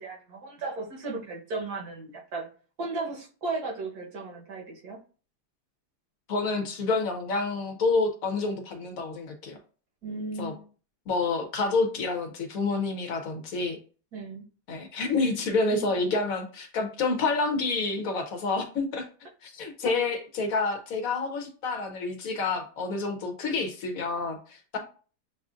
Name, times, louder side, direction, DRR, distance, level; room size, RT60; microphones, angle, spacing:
voice 1, 0.0-2.5 2.8-5.0 10.0-10.7 14.1-14.4 15.7-15.8 19.8-19.9, right 3 dB, 75° right, -1 dB, 1.6 m, -35 dB
voice 2, 6.3-9.6 10.4-10.5 11.1-13.8 14.7-19.1 19.4-24.8, left 3 dB, 65° left, 5 dB, 1.1 m, -28 dB
7.0 x 2.5 x 2.4 m, 0.38 s
omnidirectional pair, 1.7 m